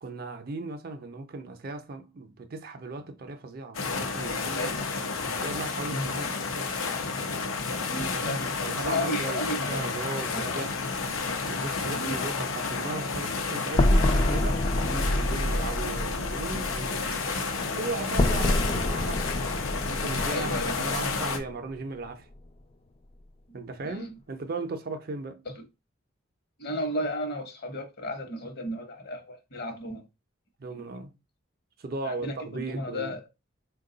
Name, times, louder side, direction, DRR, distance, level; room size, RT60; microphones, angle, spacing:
voice 1, 0.0-4.8 5.4-6.4 8.1-8.4 8.6-10.8 11.4-19.4 19.9-22.3 23.5-25.4 30.6-31.1 31.8-33.2, right 3 dB, 45° right, 0.5 m, -37 dB
sound 1, 3.7-21.4, left 4 dB, 85° left, 0.7 m, -31 dB
voice 2, 4.5-4.8 5.9-6.1 7.9-10.5 11.9-12.2 14.8-15.0 20.3-20.9 23.8-24.1 26.6-30.0 32.0-33.2, left 1 dB, 50° left, 0.9 m, -34 dB
sound 2, 13.7-21.8, left 1 dB, 30° left, 0.4 m, -27 dB
4.5 x 2.2 x 3.8 m
head